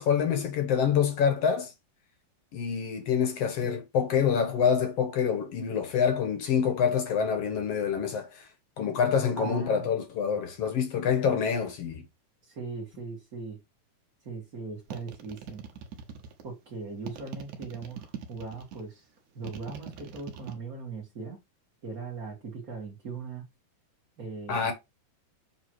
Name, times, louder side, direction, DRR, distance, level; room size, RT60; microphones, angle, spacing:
voice 1, 0.0-1.7 2.5-8.5 8.8-12.0 24.5-24.7, left 7 dB, 60° left, 1.9 m, -26 dB
voice 2, 9.4-9.9 12.4-13.6 14.2-15.6 16.4-19.1 19.3-21.4 21.8-23.5 24.2-24.7, right 4 dB, 30° right, 2.2 m, -39 dB
sound 1, 14.9-16.5 17.1-18.8 19.4-20.5, right 8 dB, 70° right, 2.5 m, -41 dB
7.6 x 3.9 x 4.6 m
omnidirectional pair, 3.9 m